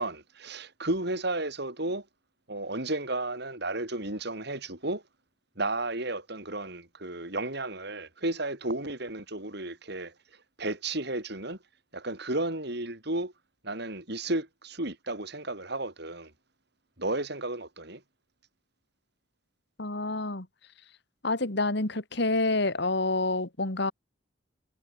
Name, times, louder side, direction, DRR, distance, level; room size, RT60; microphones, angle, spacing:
voice 1, 0.0-2.0 2.5-5.0 5.6-10.1 10.6-11.6 11.9-13.3 13.6-16.3 17.0-18.0, right 2 dB, 60° right, 6.0 m, -33 dB
voice 2, 19.8-20.5 21.2-23.9, left 2 dB, 60° left, 2.5 m, -28 dB
head